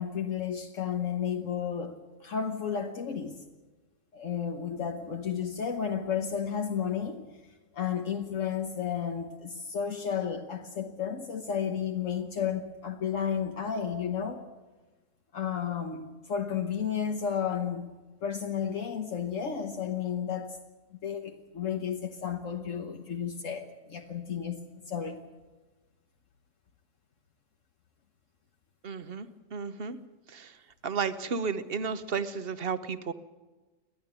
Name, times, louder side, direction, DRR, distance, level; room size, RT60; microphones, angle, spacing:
voice 1, 0.0-3.4 4.1-7.2 7.7-14.4 15.3-17.9 18.2-20.6 21.0-24.6 24.9-25.2, left 7 dB, 75° left, 1.5 m, -32 dB
voice 2, 28.8-30.0 30.3-30.6 30.8-33.1, right 5 dB, 50° right, 1.2 m, -33 dB
29.5 x 11.5 x 9.0 m
omnidirectional pair, 1.3 m